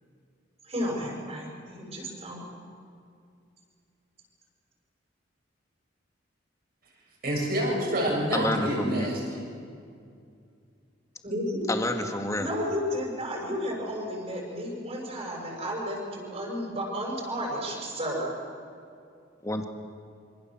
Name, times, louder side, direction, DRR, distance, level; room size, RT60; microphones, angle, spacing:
voice 1, 0.6-2.4 11.2-11.8 12.4-18.3, equal, 35° right, -1 dB, 7.1 m, -32 dB
voice 2, 7.2-9.4, equal, 50° right, -2 dB, 7.7 m, -27 dB
voice 3, 8.3-9.1 11.7-12.5 19.4-19.6, left 1 dB, 15° left, 5 dB, 2.1 m, -28 dB
26.5 x 25.5 x 7.8 m, 2.4 s
head